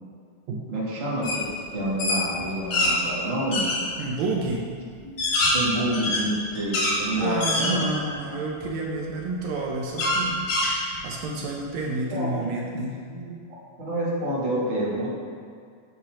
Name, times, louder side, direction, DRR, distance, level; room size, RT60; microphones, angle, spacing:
voice 1, 0.7-3.8 5.0-5.1 5.5-7.8 12.1-12.5 13.1-13.3 13.8-15.1, right 1 dB, 30° right, -7 dB, 1.2 m, -28 dB
sound 1, 1.2-1.4 1.8-2.9 3.5-3.8 4.4-4.5 5.0-7.0 7.4-8.1 8.6-8.7 10.0-11.2, left 2 dB, 75° left, 3.0 m, -24 dB
voice 2, 4.0-4.7 7.1-13.0, right 2 dB, 75° right, -2 dB, 2.0 m, -30 dB
8.1 x 2.9 x 6.2 m, 2.2 s
omnidirectional pair, 3.5 m